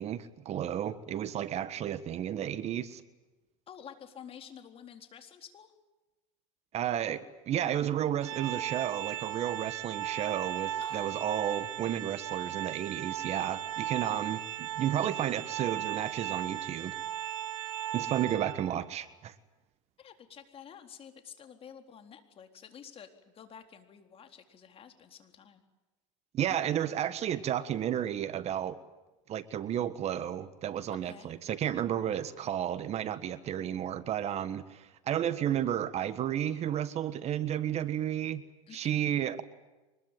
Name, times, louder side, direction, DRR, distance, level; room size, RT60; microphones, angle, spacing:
voice 1, 0.0-3.0 6.7-17.0 17.9-19.3 26.3-28.8 29.3-38.4 38.7-39.4, right 10 dB, 40° right, 13 dB, 1.4 m, -32 dB
voice 2, 3.7-5.7 10.8-11.2 20.0-25.6 30.9-31.3 38.7-39.2, left 8 dB, 35° left, 6 dB, 4.0 m, -50 dB
Organ, 8.2-18.9, right 12 dB, 80° right, 2.1 m, -37 dB
24.5 x 21.0 x 9.2 m, 1.1 s
supercardioid pair, 105°, 17 cm